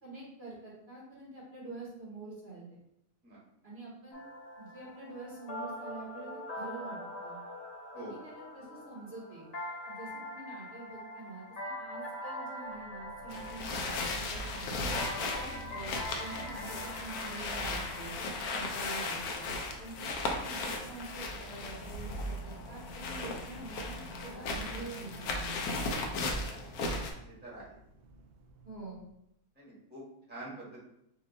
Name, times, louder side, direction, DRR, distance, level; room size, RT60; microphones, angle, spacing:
voice 1, 0.0-2.8 3.6-4.2 4.6-7.4 7.9-9.4 9.9-14.8 15.3-18.1 18.5-19.5 19.8-25.8 28.6-29.0, right 2 dB, 45° right, -6 dB, 1.5 m, -46 dB
sound 1, 4.1-19.8, left 1 dB, 40° left, 0.6 m, -43 dB
sound 2, 12.6-29.2, left 2 dB, 85° right, 0.5 m, -54 dB
sound 3, 13.3-27.1, left 2 dB, 80° left, 1.2 m, -36 dB
voice 2, 27.2-27.8 29.5-30.8, right 1 dB, 5° right, -6 dB, 1.3 m, -47 dB
4.5 x 2.7 x 3.9 m, 0.79 s
omnidirectional pair, 1.6 m